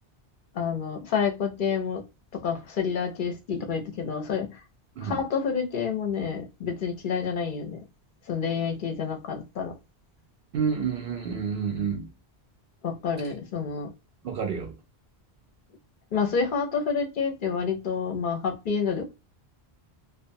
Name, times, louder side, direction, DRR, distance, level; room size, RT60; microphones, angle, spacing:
voice 1, 0.5-2.0 2.3-4.6 5.0-7.8 8.3-9.8 12.8-13.9 16.1-19.0, left 6 dB, 55° left, 0.7 m, -28 dB
voice 2, 10.5-12.1 14.2-14.8, right 6 dB, 60° right, 0.7 m, -29 dB
2.5 x 2.2 x 2.5 m
omnidirectional pair, 1.1 m